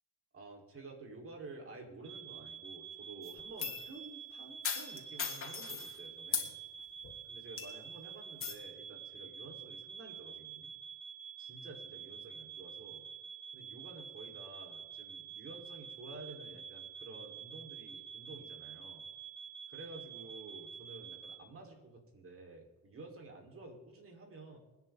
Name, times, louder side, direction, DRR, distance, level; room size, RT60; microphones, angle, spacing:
voice 1, 0.3-6.6 7.3-10.7 11.4-13.1 13.5-19.1 19.7-24.6, right 3 dB, 45° right, 1 dB, 4.8 m, -51 dB
sound 1, 2.0-21.4, right 7 dB, 90° right, 1.8 m, -48 dB
sound 2, 3.2-3.9 4.6-5.9 6.3-6.5 7.0-7.2 7.6-7.9 8.4-8.5, left 6 dB, 45° left, 3.1 m, -38 dB
25.5 x 10.0 x 4.0 m, 1.1 s
cardioid pair, 90°, 30 cm